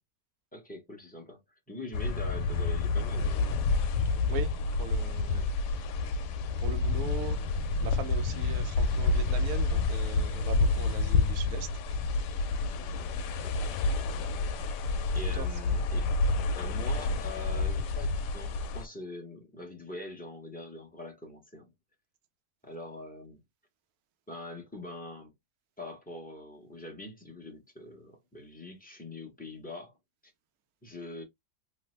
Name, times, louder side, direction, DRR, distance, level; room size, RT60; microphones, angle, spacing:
voice 1, 0.5-3.6 5.3-5.5 12.9-13.1 13.4-13.7 15.1-16.1 16.6-21.7 22.6-23.4 24.3-25.3 25.8-30.0 30.8-31.2, left 2 dB, 10° left, 0.6 m, -43 dB
sound 1, 1.9-18.8, left 3 dB, 80° left, 1.2 m, -29 dB
voice 2, 4.3-5.4 6.6-7.4 7.8-11.7 13.6-13.7 14.3-14.5 15.3-15.5, right 7 dB, 70° right, 1.0 m, -40 dB
3.3 x 2.0 x 3.1 m
omnidirectional pair, 1.8 m